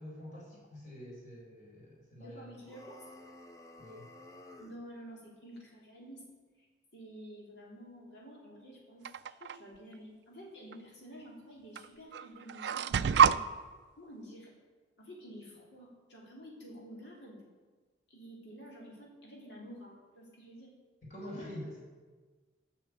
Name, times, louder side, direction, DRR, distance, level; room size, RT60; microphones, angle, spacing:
voice 1, 0.0-2.5 3.8-4.1 21.0-21.8, left 1 dB, 45° left, -5 dB, 4.2 m, -46 dB
voice 2, 2.2-3.0 4.6-6.3 6.6-6.7 6.9-9.1 9.4-13.4 14.0-14.5 15.0-17.4 18.1-20.7 21.3-21.8, equal, 75° left, -3 dB, 3.2 m, -50 dB
sound 1, 2.6-4.8, left 1 dB, 20° left, 0.8 m, -52 dB
sound 2, 9.0-9.6 10.7-10.8 11.8-11.9 12.1-13.4, right 7 dB, 75° right, 0.3 m, -26 dB
10.0 x 6.2 x 8.2 m, 1.4 s
head